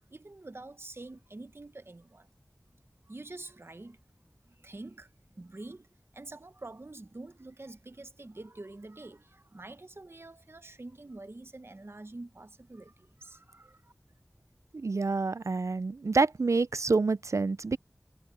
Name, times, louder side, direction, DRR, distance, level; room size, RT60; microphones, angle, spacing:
voice 1, 0.1-2.3 3.1-4.0 4.5-5.1 5.3-5.9 6.1-13.9, right 2 dB, 50° right, 1.0 m, -46 dB
voice 2, 14.7-17.8, right 3 dB, 70° right, 0.4 m, -27 dB
wide cardioid pair, 50°, 5 cm